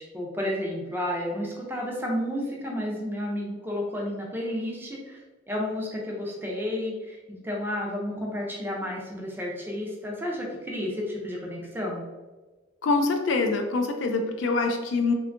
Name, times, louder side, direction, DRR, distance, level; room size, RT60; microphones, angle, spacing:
voice 1, 0.1-5.2 5.5-12.0, left 1 dB, 10° right, -2 dB, 0.4 m, -31 dB
voice 2, 12.8-15.1, left 3 dB, 65° left, 5 dB, 0.3 m, -25 dB
2.6 x 2.2 x 2.5 m, 1.3 s
head